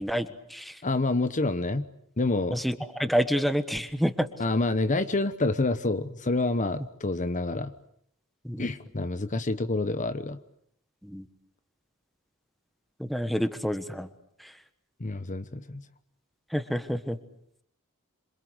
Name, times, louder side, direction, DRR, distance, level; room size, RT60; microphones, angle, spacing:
voice 1, 0.0-0.8 2.5-4.3 8.4-8.7 11.0-11.3 13.0-14.1 14.4-14.5 16.5-17.2, equal, ahead, 10 dB, 1.4 m, -28 dB
voice 2, 0.8-1.9 2.2-2.6 4.4-7.7 8.6-10.4 15.0-15.8, left 2 dB, 35° left, 11 dB, 1.1 m, -27 dB
27.0 x 25.5 x 8.1 m, 0.69 s
head